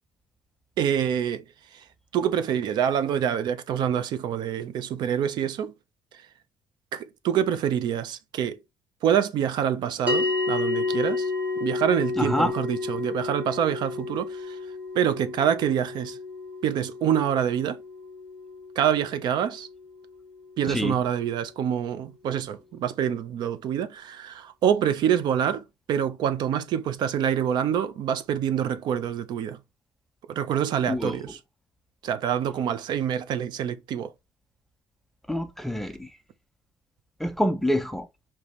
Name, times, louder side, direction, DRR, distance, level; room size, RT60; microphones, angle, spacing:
voice 1, 0.8-1.4 1.7-1.8 2.1-5.7 6.9-8.6 9.0-11.3 11.6-14.6 14.9-16.2 16.6-17.8 18.8-19.7 20.6-29.6 30.3-31.4 32.0-34.1, right 9 dB, 70° right, 0.6 m, -26 dB
sound 1, 10.1-20.6, left 3 dB, 20° right, 1.3 m, -31 dB
voice 2, 12.2-12.5 20.7-21.0 30.9-31.2 35.3-36.1 37.2-38.1, left 1 dB, 5° left, 0.4 m, -26 dB
5.2 x 3.0 x 3.0 m
cardioid pair, 160°, 8 cm